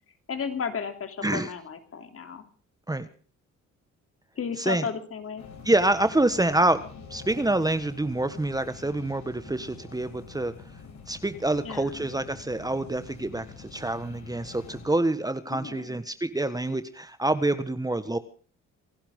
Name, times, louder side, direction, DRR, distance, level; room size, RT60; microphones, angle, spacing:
voice 1, 0.3-2.4 4.4-5.5 11.6-12.1 15.5-16.0, left 6 dB, 50° left, 7 dB, 3.3 m, -34 dB
voice 2, 1.2-1.5 2.9-3.1 4.6-4.9 5.6-6.8 7.1-10.5 11.1-18.2, right 2 dB, 10° right, 11 dB, 1.5 m, -26 dB
sound 1, 5.4-14.9, left 5 dB, 70° left, 6.4 m, -46 dB
27.0 x 11.5 x 3.8 m, 0.41 s
cardioid pair, 90°, 30 cm